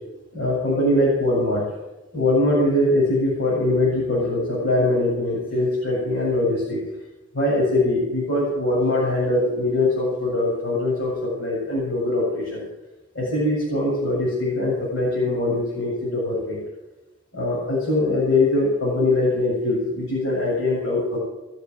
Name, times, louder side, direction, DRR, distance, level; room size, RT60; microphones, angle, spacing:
voice 1, 0.3-1.6 2.1-6.8 7.3-12.7 13.1-16.6 17.3-21.2, left 2 dB, 75° left, -7 dB, 7.9 m, -22 dB
21.5 x 7.5 x 9.1 m, 1.1 s
head